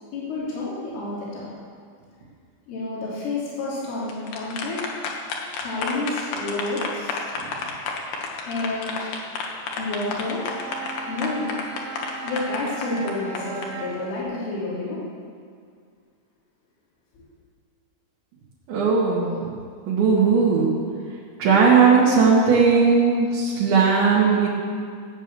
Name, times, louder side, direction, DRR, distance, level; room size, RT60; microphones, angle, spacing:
voice 1, 0.1-1.5 2.7-4.8 5.6-7.2 8.5-9.1 9.8-10.4 11.1-11.5 12.2-15.0 17.2-17.3, left 2 dB, 85° left, -7 dB, 5.7 m, -29 dB
sound 1, 3.9-13.7, left 5 dB, 65° left, 3.1 m, -31 dB
Bowed string instrument, 9.7-14.2, right 4 dB, 55° right, 2.4 m, -38 dB
voice 2, 18.7-19.3 19.9-20.7 21.4-24.5, right 5 dB, 70° right, -7 dB, 4.2 m, -17 dB
17.5 x 8.8 x 6.9 m, 2.1 s
omnidirectional pair, 5.5 m